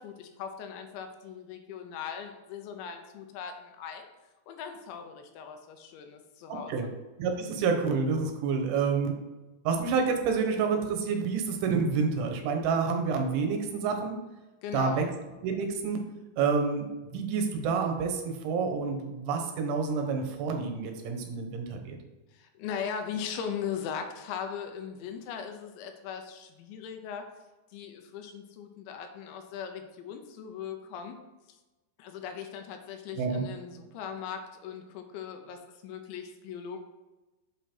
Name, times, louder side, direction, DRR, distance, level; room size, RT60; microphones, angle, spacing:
voice 1, 0.0-4.1 4.5-6.9 14.6-15.0 22.3-27.3 27.7-31.2 32.0-36.8, left 7 dB, 80° left, 5 dB, 3.0 m, -39 dB
voice 2, 6.5-6.9 7.2-9.1 9.7-14.2 14.7-15.0 15.4-16.0 16.4-22.0 33.2-33.4, right 5 dB, 80° right, 4 dB, 3.5 m, -28 dB
8.2 x 5.6 x 4.4 m, 1.1 s
omnidirectional pair, 5.5 m